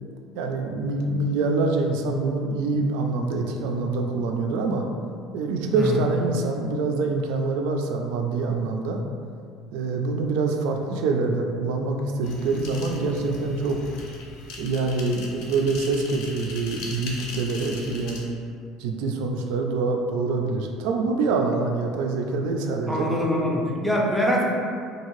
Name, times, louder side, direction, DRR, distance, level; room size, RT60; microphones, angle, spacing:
voice 1, 0.3-4.9 5.3-9.0 9.7-13.8 14.6-18.3 18.8-23.1, right 3 dB, 85° right, 3 dB, 0.3 m, -25 dB
sound 1, 12.2-18.2, left 2 dB, 70° left, 0.5 m, -38 dB
voice 2, 22.9-24.4, equal, 5° right, -2 dB, 0.4 m, -24 dB
2.7 x 2.4 x 3.0 m, 2.3 s
cardioid pair, 155°, 0 cm